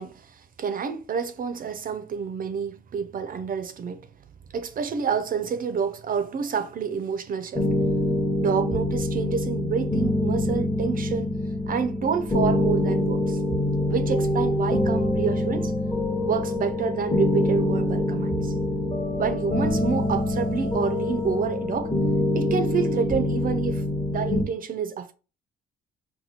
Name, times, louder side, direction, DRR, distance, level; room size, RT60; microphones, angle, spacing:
voice 1, 0.0-4.0 4.5-7.7 8.4-11.4 11.7-13.4 13.9-15.7 16.2-18.5 19.2-21.9 22.3-23.8 24.1-25.1, right 6 dB, 45° right, 0.4 m, -28 dB
sound 1, 7.5-24.4, left 1 dB, 15° left, 0.8 m, -25 dB
4.2 x 2.2 x 2.8 m
cardioid pair, 90°, 20 cm